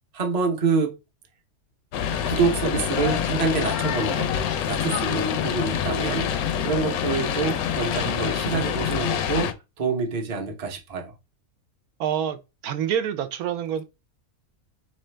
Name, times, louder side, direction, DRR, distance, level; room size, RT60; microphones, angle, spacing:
voice 1, 0.1-0.9 2.2-4.3 4.7-6.3 6.6-11.1, right 4 dB, 35° right, 0.7 m, -26 dB
sound 1, 1.9-9.5, left 9 dB, 80° left, 1.1 m, -26 dB
voice 2, 12.0-13.8, right 9 dB, 90° right, 1.1 m, -27 dB
3.8 x 3.2 x 3.3 m
omnidirectional pair, 1.5 m